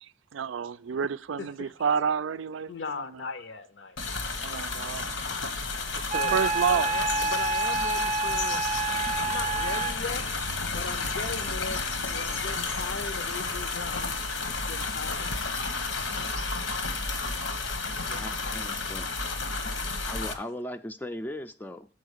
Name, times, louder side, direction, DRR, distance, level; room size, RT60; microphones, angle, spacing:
voice 1, 0.0-3.2 4.1-5.1 5.9-6.9 7.2-7.3, right 6 dB, 85° right, 0.4 m, -30 dB
voice 2, 1.4-1.7 2.7-4.2 5.2-5.5 6.1-8.7 9.2-10.3 10.7-14.1 14.6-15.5 17.9-18.8 20.3-20.5, left 4 dB, 70° left, 0.6 m, -38 dB
sound 1, 4.0-20.3, left 3 dB, 90° left, 1.1 m, -31 dB
Wind instrument woodwind instrument, 6.1-10.0, right 3 dB, 40° right, 0.6 m, -28 dB
voice 3, 18.1-19.1 20.1-21.9, left 1 dB, 10° left, 0.3 m, -38 dB
7.0 x 4.8 x 6.4 m
head